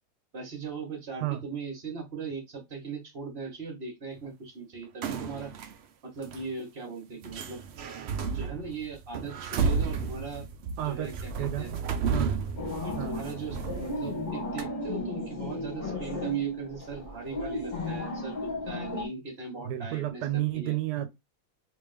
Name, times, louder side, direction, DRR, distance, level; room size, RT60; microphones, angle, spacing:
voice 1, 0.3-5.5 6.0-7.6 8.2-10.4 10.8-11.7 12.8-20.2 20.5-20.8, right 4 dB, 40° right, 1.7 m, -39 dB
sound 1, 5.0-5.7 6.2-6.4 7.2-14.3 14.6-14.7, right 5 dB, 70° right, 0.6 m, -32 dB
voice 2, 10.8-11.8 12.1-12.3 13.0-13.2 19.6-21.1, right 14 dB, 90° right, 1.2 m, -31 dB
sound 2, 12.6-19.1, left 1 dB, 30° left, 1.3 m, -34 dB
3.5 x 2.9 x 3.3 m
omnidirectional pair, 1.7 m